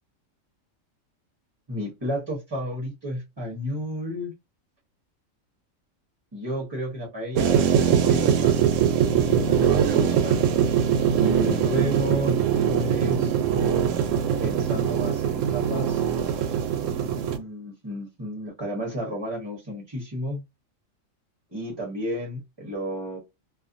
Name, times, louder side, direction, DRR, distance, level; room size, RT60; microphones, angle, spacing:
voice 1, 1.7-4.3 6.3-8.8 9.1-10.4 11.2-13.9 14.4-16.0 17.3-20.4 21.5-23.2, equal, 25° right, 0.7 m, -32 dB
sound 1, 7.3-17.4, right 8 dB, 75° right, 0.9 m, -22 dB
2.5 x 2.4 x 2.5 m
omnidirectional pair, 1.4 m